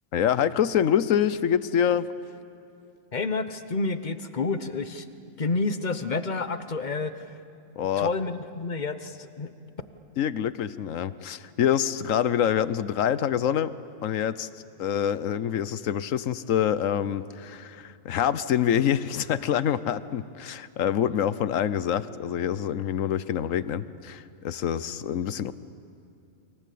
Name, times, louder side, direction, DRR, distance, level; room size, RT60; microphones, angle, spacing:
voice 1, 0.1-2.1 7.8-8.1 10.2-13.7 14.0-14.5 14.8-25.5, left 9 dB, 75° left, 15 dB, 1.2 m, -26 dB
voice 2, 3.1-5.1 5.4-7.3 8.0-9.5, left 3 dB, 35° left, 11 dB, 1.1 m, -29 dB
29.5 x 24.0 x 8.5 m, 2.7 s
omnidirectional pair, 1.4 m